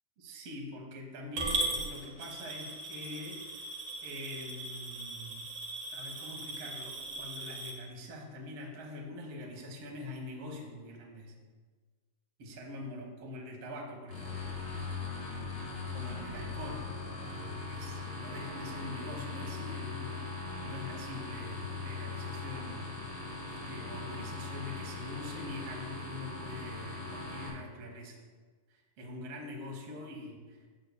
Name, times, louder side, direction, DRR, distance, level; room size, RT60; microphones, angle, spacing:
voice 1, 0.2-5.5 5.9-11.4 12.4-14.5 15.9-17.0 17.2-23.2 23.5-28.2 28.7-30.7, left 1 dB, 65° right, 0 dB, 1.5 m, -44 dB
Coin (dropping) / Glass, 1.4-7.7, right 2 dB, 85° right, 1.1 m, -38 dB
sound 1, 14.1-27.5, left 3 dB, 30° left, 1.4 m, -40 dB
15.5 x 6.8 x 2.2 m, 1.4 s
omnidirectional pair, 4.6 m